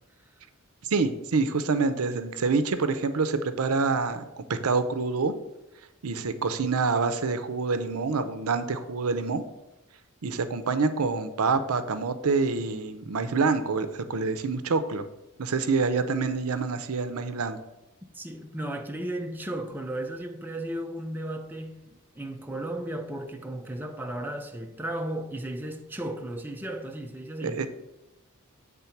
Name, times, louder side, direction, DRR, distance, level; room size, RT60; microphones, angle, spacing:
voice 1, 0.9-5.3 6.0-9.4 10.2-15.1 15.4-17.6 27.4-27.7, right 4 dB, 75° right, 0.6 m, -26 dB
voice 2, 18.1-27.6, right 1 dB, 10° right, 0.5 m, -35 dB
8.3 x 3.7 x 5.8 m
head